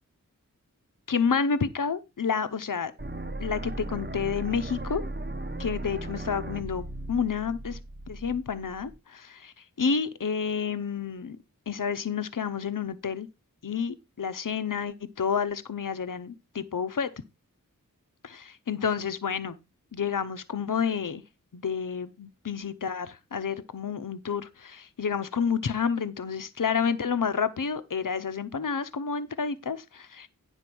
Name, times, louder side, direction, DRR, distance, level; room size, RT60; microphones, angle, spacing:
voice 1, 1.1-2.9 3.4-5.0 5.6-7.8 8.1-11.4 11.7-13.3 13.6-17.1 18.2-19.6 19.9-21.2 21.5-30.3, left 6 dB, 65° left, 0.8 m, -30 dB
sound 1, 3.0-9.0, right 1 dB, 30° right, 0.9 m, -37 dB
9.9 x 4.3 x 6.1 m
wide cardioid pair, 45°, 34 cm